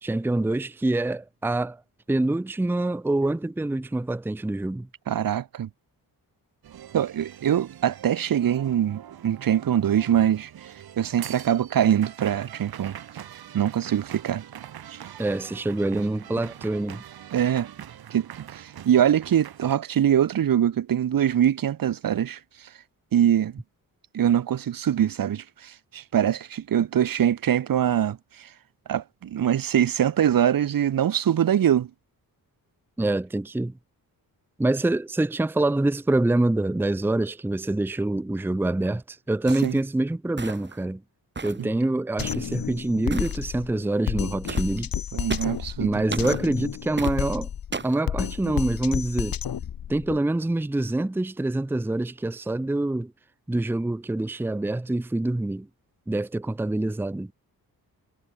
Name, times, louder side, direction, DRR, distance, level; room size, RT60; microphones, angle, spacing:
voice 1, 0.0-1.8 2.1-4.9 15.2-17.0 33.0-33.7 34.6-41.0 41.4-44.9 45.8-47.5 47.8-49.4 49.9-53.1 53.5-55.7 56.1-57.3, right 2 dB, 5° right, 0.7 m, -25 dB
voice 2, 5.1-5.7 6.9-10.5 11.0-13.0 13.5-14.4 14.9-15.0 17.3-17.7 18.1-22.4 23.1-23.6 24.1-28.5 28.9-31.9 39.6-39.8 41.6-41.8 45.1-46.0, right 10 dB, 65° right, 1.4 m, -23 dB
sound 1, 6.6-19.7, right 10 dB, 80° right, 2.8 m, -43 dB
sound 2, 39.5-39.8 40.4-40.8 41.4-41.7 42.2-42.5 43.1-43.4 44.5-44.7 45.3-45.6 46.1-46.4 47.0-47.2 47.7-48.0, right 4 dB, 30° right, 3.9 m, -34 dB
Drum kit, 42.2-50.2, left 9 dB, 70° left, 3.8 m, -31 dB
wide cardioid pair, 115°, 36 cm